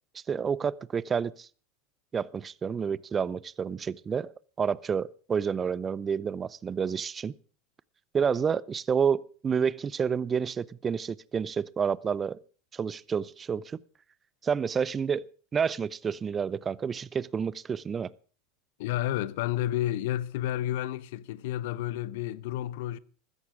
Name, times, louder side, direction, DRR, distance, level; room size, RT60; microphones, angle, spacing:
voice 1, 0.1-1.5 2.1-4.3 4.6-7.3 8.1-12.4 12.7-13.8 14.4-15.3 15.5-18.1, right 6 dB, 25° right, 0.6 m, -29 dB
voice 2, 18.8-23.0, left 13 dB, 75° left, 0.8 m, -31 dB
15.5 x 13.5 x 4.9 m
supercardioid pair, 110°, 0 cm